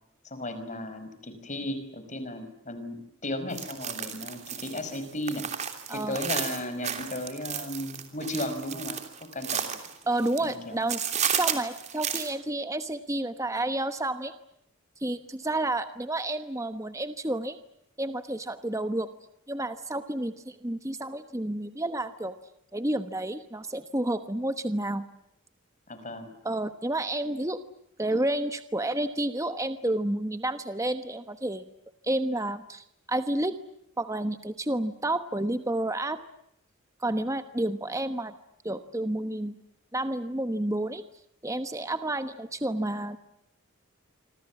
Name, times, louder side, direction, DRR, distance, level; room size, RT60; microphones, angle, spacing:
voice 1, 0.2-5.5 5.9-9.0 9.3-9.8 10.4-10.8 25.9-26.3, left 1 dB, 35° left, 9 dB, 5.3 m, -35 dB
sound 1, 3.5-10.6 10.9-12.3, right 8 dB, 30° right, 3.1 m, -33 dB
voice 2, 5.9-6.2 10.1-14.3 15.0-17.6 18.0-19.1 19.5-22.3 22.7-25.1 26.4-27.6 28.0-31.6 32.0-33.6 34.0-36.2 37.0-38.3 38.6-39.5 39.9-41.0 41.4-43.2, right 1 dB, 15° right, 10 dB, 1.1 m, -30 dB
27.0 x 26.0 x 7.3 m, 0.76 s
head